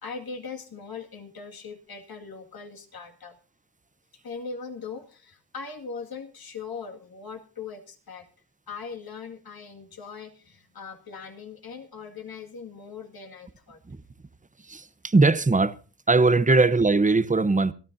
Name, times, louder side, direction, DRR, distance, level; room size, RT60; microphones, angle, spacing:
voice 1, 0.0-3.4 4.2-8.3 8.7-13.8, left 5 dB, 55° left, 2.1 m, -40 dB
voice 2, 14.7-15.7 16.1-17.7, right 3 dB, 20° right, 0.8 m, -20 dB
25.5 x 12.5 x 2.7 m
wide cardioid pair, 130°, 43 cm